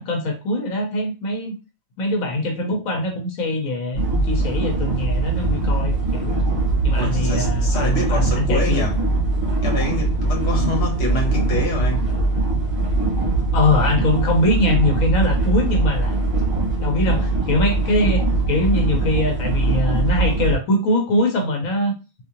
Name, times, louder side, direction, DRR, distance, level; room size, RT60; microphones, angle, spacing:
voice 1, 0.0-1.6 2.0-6.4 6.8-8.8 13.5-16.1 16.7-21.9, left 1 dB, 85° left, 1.2 m, -22 dB
sound 1, 3.9-20.6, right 2 dB, 35° right, 1.9 m, -21 dB
voice 2, 6.9-9.0 9.6-12.1, left 1 dB, 50° left, 1.4 m, -26 dB
3.6 x 2.8 x 2.8 m
omnidirectional pair, 1.4 m